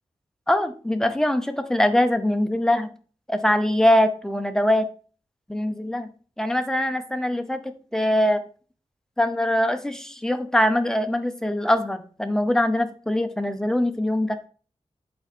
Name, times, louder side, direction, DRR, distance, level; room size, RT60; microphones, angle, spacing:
voice 1, 0.5-2.9 3.3-4.9 5.5-6.1 6.4-8.4 9.2-14.4, left 1 dB, 5° left, 8 dB, 0.7 m, -22 dB
8.5 x 3.9 x 4.2 m, 0.41 s
wide cardioid pair, 130°, 12 cm